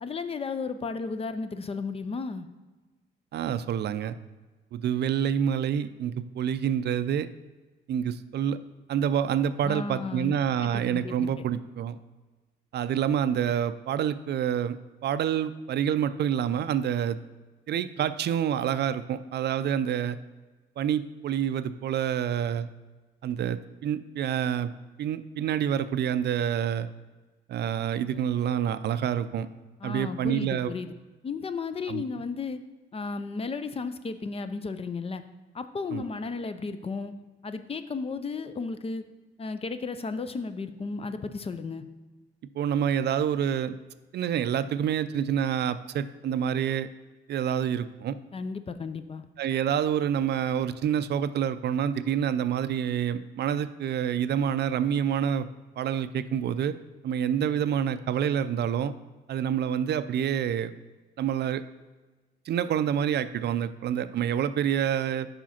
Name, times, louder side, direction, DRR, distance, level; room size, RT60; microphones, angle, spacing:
voice 1, 0.0-2.5 9.6-10.3 10.6-11.3 29.8-30.9 31.2-32.6 32.9-35.2 35.5-37.1 37.4-39.0 39.4-41.8 48.3-49.2, left 4 dB, 30° left, 11 dB, 0.5 m, -34 dB
voice 2, 3.3-4.2 4.7-7.3 7.9-8.6 8.9-12.0 12.7-14.8 15.0-17.2 17.7-20.2 20.8-22.7 23.2-24.7 25.0-26.9 27.5-29.5 29.8-30.7 31.9-32.0 35.9-36.0 42.6-43.8 44.1-46.9 47.3-48.2 49.4-55.5 55.8-56.7 57.0-58.9 59.3-60.7 61.2-61.6 62.5-65.3, right 9 dB, 60° right, 13 dB, 0.4 m, -27 dB
5.1 x 4.8 x 5.7 m, 1.2 s
cardioid pair, 90°, 20 cm